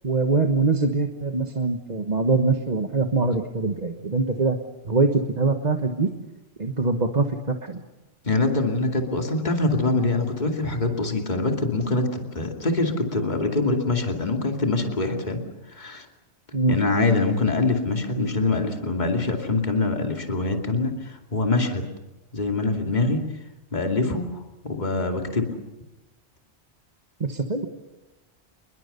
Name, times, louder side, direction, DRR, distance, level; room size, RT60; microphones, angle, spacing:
voice 1, 0.0-4.6 4.8-6.1 6.6-7.8 16.5-16.8 27.2-27.7, right 3 dB, 40° right, 5 dB, 1.4 m, -23 dB
voice 2, 8.2-15.4 15.7-16.1 16.7-21.9 22.3-23.3 23.7-25.5, left 3 dB, 40° left, 3 dB, 2.7 m, -24 dB
28.0 x 22.0 x 6.9 m, 1.0 s
omnidirectional pair, 1.2 m